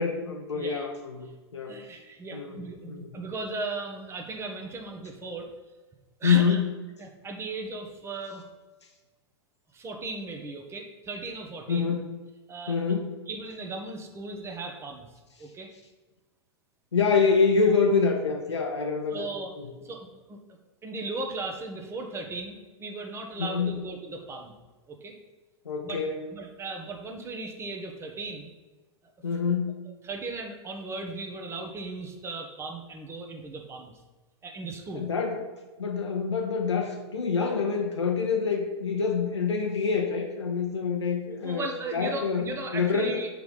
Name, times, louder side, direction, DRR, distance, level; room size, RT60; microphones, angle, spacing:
voice 1, 0.0-1.8 2.3-2.6 2.8-3.1 6.2-6.7 11.7-12.1 12.7-13.1 16.9-19.3 19.6-19.7 23.4-23.8 25.7-26.2 29.2-29.8 34.9-35.4 35.8-41.7 41.9-42.4 42.7-43.1, left 5 dB, 90° left, 1 dB, 0.7 m, -26 dB
voice 2, 0.5-0.9 1.7-5.5 6.2-6.6 7.0-8.4 9.7-12.0 12.5-12.8 13.3-15.1 15.4-15.7 19.1-19.5 19.8-20.4 20.8-24.5 24.9-25.2 25.8-26.0 26.3-28.5 30.0-33.9 34.4-35.1 41.4-43.3, right 3 dB, 20° right, 3 dB, 0.9 m, -37 dB
6.1 x 3.3 x 5.4 m, 1.2 s
hypercardioid pair, 105°, 14 cm